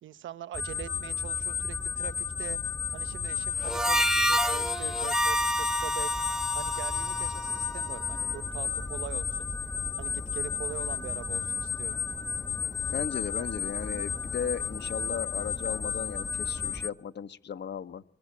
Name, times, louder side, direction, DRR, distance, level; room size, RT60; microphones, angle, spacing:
voice 1, 0.0-2.6 2.9-6.1 6.5-9.5 10.0-12.0, right 11 dB, 90° right, 13 dB, 1.0 m, -42 dB
sound 1, 0.5-16.9, left 5 dB, 15° left, 1.3 m, -33 dB
Harmonica, 3.6-8.2, equal, 5° right, 1.0 m, -29 dB
voice 2, 12.9-18.0, left 7 dB, 65° left, 11 dB, 1.3 m, -36 dB
23.5 x 22.5 x 8.6 m, 0.66 s
cardioid pair, 100°, 19 cm